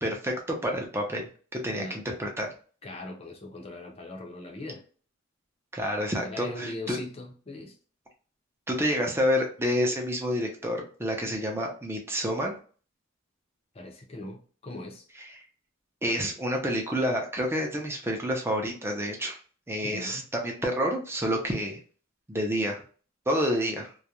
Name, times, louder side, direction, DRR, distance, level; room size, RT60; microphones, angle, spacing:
voice 1, 0.0-2.5 5.7-7.0 8.7-12.6 16.0-19.4 19.7-21.8 22.3-22.8 23.3-23.9, equal, 10° right, 0.6 m, -29 dB
voice 2, 1.7-2.0 2.8-4.8 6.2-7.7 13.7-15.1 19.8-20.3, left 2 dB, 30° left, 0.6 m, -40 dB
2.4 x 2.1 x 2.8 m
head